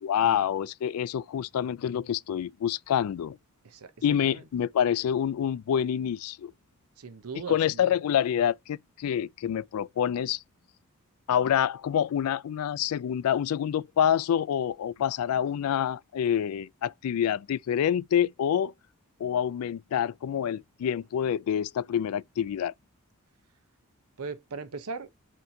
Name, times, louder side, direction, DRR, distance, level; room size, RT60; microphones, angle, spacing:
voice 1, 0.0-3.4 4.0-6.5 7.5-10.4 11.3-18.7 19.2-22.7, left 9 dB, 75° left, 0.3 m, -27 dB
voice 2, 3.6-4.4 7.0-8.0 24.2-25.1, right 4 dB, 90° right, 0.8 m, -39 dB
4.4 x 2.8 x 3.7 m
head